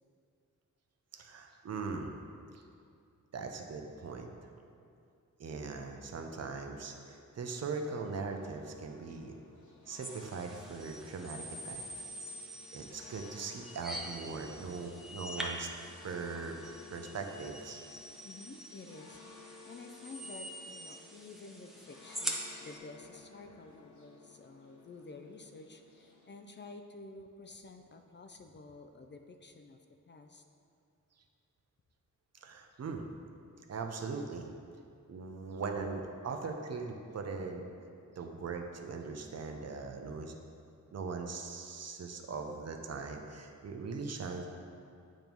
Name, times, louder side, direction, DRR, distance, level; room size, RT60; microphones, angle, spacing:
voice 1, 1.1-2.2 2.5-2.6 3.3-4.3 5.4-9.4 9.9-11.8 12.7-15.7 16.0-16.6 16.9-17.8 32.4-33.0 33.7-34.5 35.1-37.7 38.2-40.3 40.9-44.5, right 4 dB, 55° right, 3 dB, 0.6 m, -40 dB
sound 1, 8.3-26.3, left 5 dB, 65° left, 1.0 m, -56 dB
Transformer noise cheeping, 10.0-22.8, equal, ahead, 0.7 m, -45 dB
voice 2, 18.2-29.8 30.1-30.4, left 3 dB, 35° left, 5 dB, 0.4 m, -51 dB
8.9 x 3.0 x 5.2 m, 2.4 s
wide cardioid pair, 110°, 31 cm